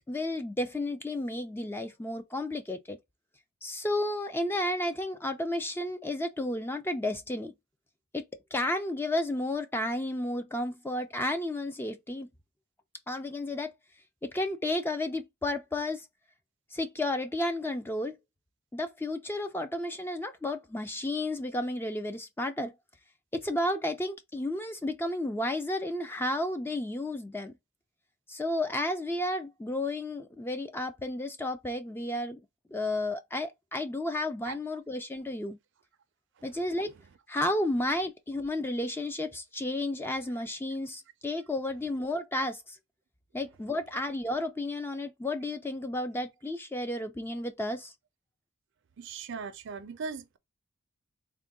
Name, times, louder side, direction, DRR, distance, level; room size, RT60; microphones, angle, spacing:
voice 1, 0.1-3.0 3.6-7.5 8.1-8.3 8.5-12.3 13.1-13.7 14.2-16.1 16.7-18.1 18.7-22.7 23.3-27.5 28.3-32.4 32.7-35.6 36.4-36.9 37.3-42.8 43.3-47.9, left 1 dB, 10° left, 0.3 m, -32 dB
voice 2, 49.0-50.4, right 5 dB, 55° right, 0.4 m, -39 dB
3.6 x 2.2 x 3.5 m
head